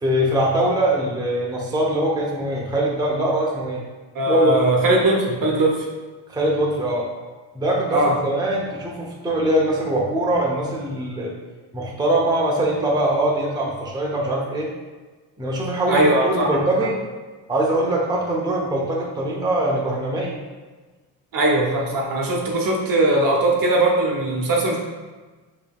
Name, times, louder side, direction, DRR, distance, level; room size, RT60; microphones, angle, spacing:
voice 1, 0.0-3.8 4.3-4.5 6.3-7.1 7.5-11.3 11.7-14.7 15.4-17.0 17.5-20.4, right 1 dB, 10° right, -4 dB, 0.8 m, -22 dB
voice 2, 4.1-5.9 7.9-8.2 15.9-16.6 21.3-24.8, right 1 dB, 50° right, -1 dB, 0.9 m, -19 dB
5.0 x 3.1 x 2.3 m, 1.3 s
supercardioid pair, 80°, 45 cm